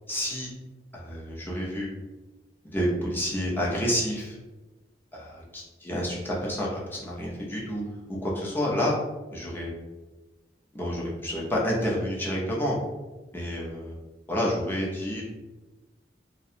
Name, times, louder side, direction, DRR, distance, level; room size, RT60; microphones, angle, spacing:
voice 1, 0.1-0.5 0.9-1.9 2.7-4.4 5.1-7.8 8.1-8.9 9.3-9.7 10.7-12.8 13.3-13.9 14.3-15.2, equal, 10° left, -4 dB, 0.6 m, -29 dB
2.5 x 2.2 x 2.7 m, 1.1 s
head